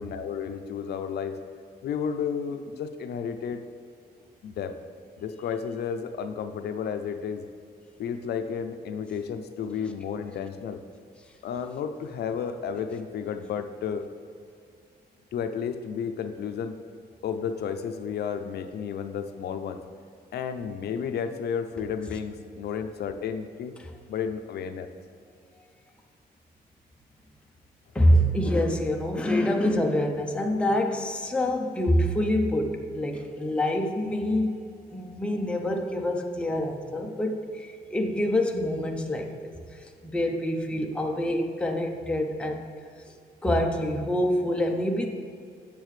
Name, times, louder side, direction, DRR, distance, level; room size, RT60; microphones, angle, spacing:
voice 1, 0.0-1.4 1.8-3.6 4.4-4.8 5.2-7.4 8.0-10.8 11.4-14.1 15.3-16.8 17.2-19.8 20.3-23.8 24.1-24.9, left 7 dB, 70° left, 7 dB, 0.4 m, -32 dB
voice 2, 27.9-34.6 34.9-39.5 40.0-42.7 43.4-45.1, left 1 dB, 5° left, 2 dB, 0.5 m, -26 dB
8.4 x 6.5 x 3.2 m, 2.3 s
wide cardioid pair, 155°, 17 cm